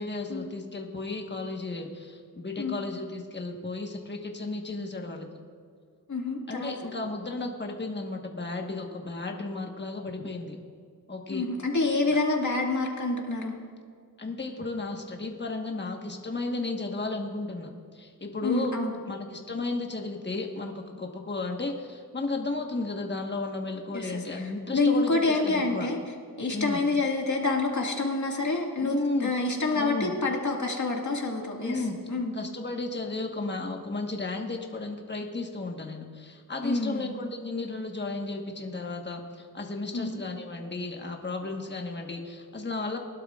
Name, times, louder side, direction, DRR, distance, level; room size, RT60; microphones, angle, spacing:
voice 1, 0.0-5.3 6.5-10.6 11.1-11.5 14.2-18.7 19.1-25.9 26.5-26.8 28.8-29.3 29.7-30.2 31.6-32.0 32.3-43.0, left 3 dB, 25° left, 2 dB, 1.4 m, -34 dB
voice 2, 6.1-6.7 11.3-13.5 18.4-19.0 23.9-26.0 26.4-31.8 32.1-32.3 36.6-37.1 39.9-40.1, left 3 dB, 45° left, 0 dB, 2.0 m, -27 dB
20.5 x 12.0 x 2.5 m, 2.1 s
wide cardioid pair, 90°, 39 cm